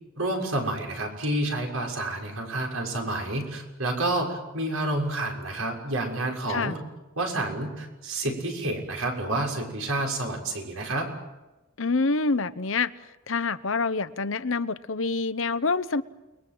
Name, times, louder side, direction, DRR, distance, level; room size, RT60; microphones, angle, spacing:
voice 1, 0.2-6.8 7.2-11.1, right 2 dB, 80° right, 1 dB, 6.4 m, -29 dB
voice 2, 11.8-12.9 13.3-16.0, left 4 dB, 65° left, 14 dB, 0.9 m, -26 dB
29.5 x 21.5 x 7.8 m, 1.1 s
head